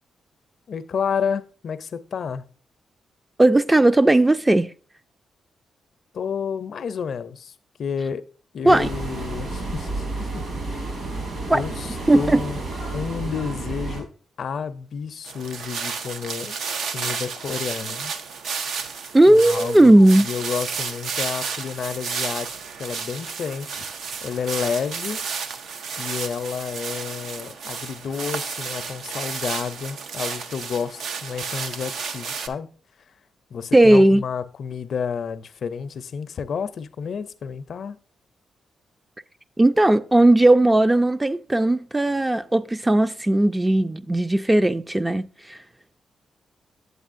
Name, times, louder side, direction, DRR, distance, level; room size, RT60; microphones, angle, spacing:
voice 1, 0.7-2.4 6.1-7.5 7.8-8.2 8.5-10.4 10.7-10.8 11.5-12.6 12.9-14.1 14.4-16.6 16.9-18.1 19.2-19.9 20.2-22.5 22.8-23.8 24.2-25.2 26.0-32.7 33.5-38.0, left 6 dB, 65° left, 0.4 m, -30 dB
voice 2, 3.4-4.7 8.6-8.9 11.5-11.6 12.1-12.4 19.1-20.3 33.7-34.2 39.6-45.6, right 1 dB, 15° right, 0.3 m, -16 dB
sound 1, 8.7-14.0, right 2 dB, 60° right, 3.4 m, -31 dB
sound 2, 15.3-32.5, right 5 dB, 85° right, 0.5 m, -32 dB
8.0 x 7.9 x 2.5 m
cardioid pair, 90°, 0 cm